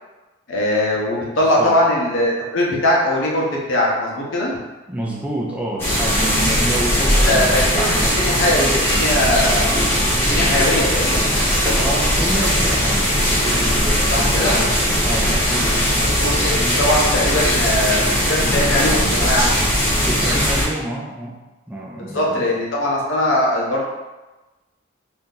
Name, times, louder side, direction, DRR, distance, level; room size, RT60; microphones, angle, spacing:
voice 1, 0.5-4.6 7.3-7.9 8.2-9.8 10.3-11.2 14.1-14.6 16.0-19.6 22.1-23.9, left 1 dB, 70° left, -3 dB, 0.8 m, -20 dB
voice 2, 1.4-1.8 4.9-8.4 10.6-10.9 11.7-15.9 20.0-21.4 21.7-22.4, right 1 dB, 5° right, -3 dB, 0.4 m, -28 dB
sound 1, 5.8-20.7, equal, 10° left, 0.9 m, -19 dB
2.8 x 2.6 x 3.7 m, 1.1 s
head